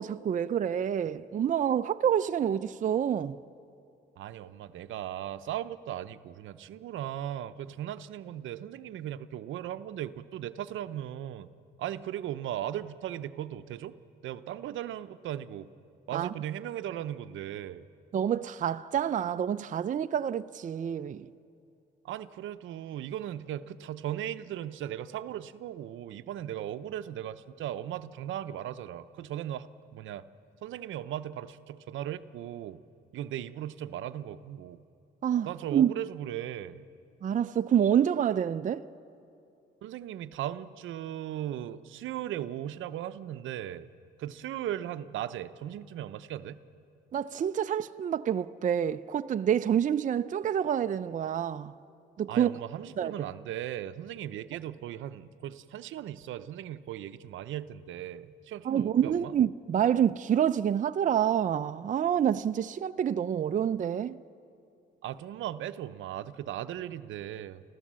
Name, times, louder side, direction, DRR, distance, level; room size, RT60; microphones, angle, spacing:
voice 1, 0.0-3.4 16.1-16.3 18.1-21.3 35.2-35.9 37.2-38.9 47.1-51.7 52.2-52.5 53.0-53.1 58.6-64.2, right 9 dB, 40° right, 0.5 m, -27 dB
voice 2, 4.2-11.5 11.8-13.9 14.2-15.7 16.1-17.8 22.0-29.7 29.9-30.2 30.6-32.8 33.1-34.8 35.4-36.8 39.8-43.9 44.2-46.6 52.3-59.3 65.0-67.6, right 11 dB, 80° right, 0.7 m, -37 dB
29.0 x 15.0 x 7.5 m
cardioid pair, 90°, 20 cm